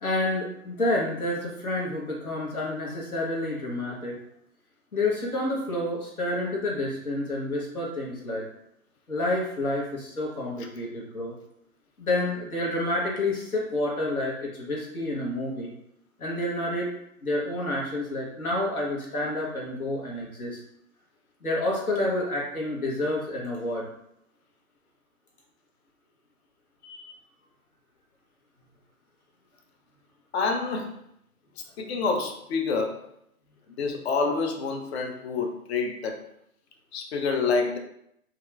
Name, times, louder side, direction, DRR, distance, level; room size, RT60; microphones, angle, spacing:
voice 1, 0.0-4.2 4.9-8.4 9.1-11.3 12.0-15.7 16.2-16.9 17.2-20.6 21.4-23.9, left 1 dB, 80° left, -2 dB, 1.2 m, -29 dB
voice 2, 26.8-27.1 30.3-30.9 31.8-33.0 33.8-36.2 36.9-37.8, left 4 dB, 50° left, 3 dB, 0.6 m, -27 dB
2.8 x 2.4 x 3.2 m, 0.75 s
figure-of-eight pair, 125°, 43 cm